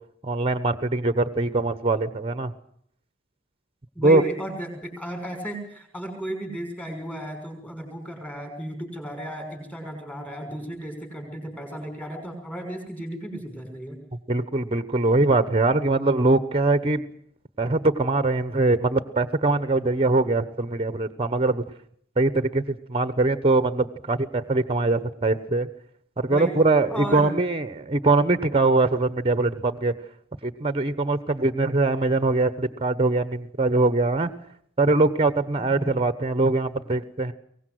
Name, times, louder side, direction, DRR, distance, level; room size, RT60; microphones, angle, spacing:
voice 1, 0.2-2.5 4.0-4.2 14.3-17.1 17.6-21.6 22.2-25.7 26.2-29.9 30.4-34.3 34.8-37.3, right 2 dB, 30° right, 13 dB, 1.2 m, -22 dB
voice 2, 3.9-14.0 26.3-26.6 26.9-27.3 35.6-35.9, right 1 dB, 5° left, 4 dB, 6.0 m, -34 dB
23.0 x 18.5 x 7.9 m, 0.66 s
head